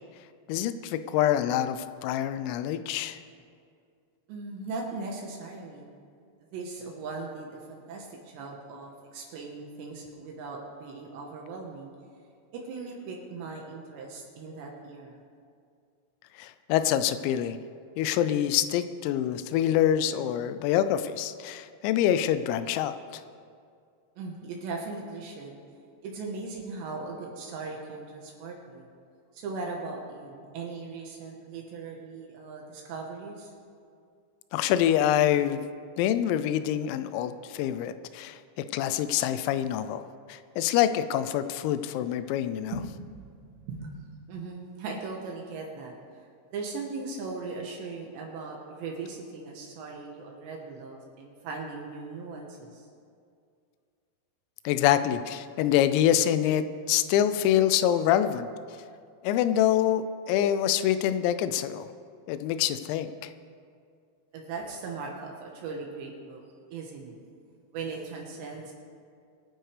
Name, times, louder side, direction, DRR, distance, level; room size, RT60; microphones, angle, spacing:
voice 1, 0.5-3.2 16.4-17.6 18.0-23.2 34.5-35.6 36.0-38.4 38.7-40.0 40.3-42.7 54.7-58.5 59.2-61.9 62.3-63.3, left 11 dB, 85° left, 11 dB, 3.3 m, -26 dB
voice 2, 4.3-5.9 6.5-11.9 12.5-15.2 24.2-25.5 26.0-28.8 29.3-33.5 42.7-44.0 44.3-46.0 46.5-52.9 64.3-66.4 66.7-67.2 67.7-68.7, right 4 dB, 70° right, 0 dB, 2.9 m, -39 dB
24.5 x 9.1 x 3.3 m, 2.3 s
omnidirectional pair, 6.0 m